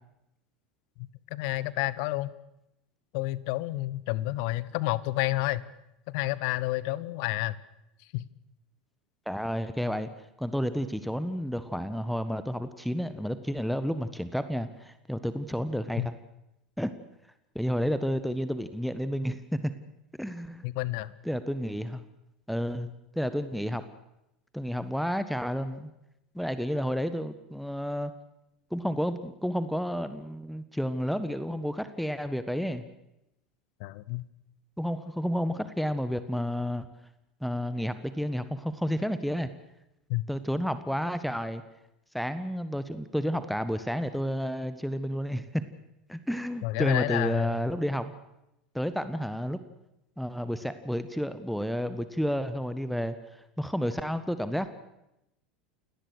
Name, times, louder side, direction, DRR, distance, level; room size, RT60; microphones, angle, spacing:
voice 1, 1.0-2.3 3.1-5.6 6.1-7.6 8.1-8.3 16.0-16.1 20.6-21.1 33.8-34.2 40.1-40.2 46.6-47.6, left 18 dB, 50° left, 19 dB, 1.1 m, -30 dB
voice 2, 9.3-10.1 10.4-16.1 16.8-16.9 17.5-19.7 20.2-20.7 21.2-22.0 22.5-23.8 24.5-25.9 26.3-28.1 28.7-32.8 34.8-36.9 37.4-39.5 40.3-41.6 42.1-45.6 46.1-48.1 48.7-49.6 50.2-53.1 53.6-54.7, equal, ahead, 12 dB, 1.4 m, -31 dB
29.0 x 18.5 x 6.5 m, 0.85 s
figure-of-eight pair, 80°, 4 cm